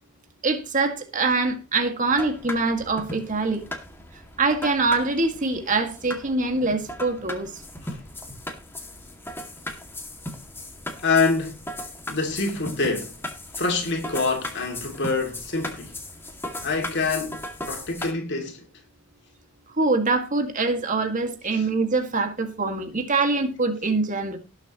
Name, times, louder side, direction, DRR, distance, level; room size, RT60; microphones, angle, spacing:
voice 1, 0.4-3.6 4.4-7.5 19.7-24.4, right 3 dB, 35° right, 1.9 m, -24 dB
sound 1, 2.1-18.1, left 1 dB, 10° left, 2.2 m, -37 dB
voice 2, 11.0-11.6 12.1-13.1 13.5-16.0 16.6-17.4 17.7-18.6 21.5-21.7, left 3 dB, 55° left, 2.5 m, -26 dB
19.0 x 7.5 x 3.0 m
head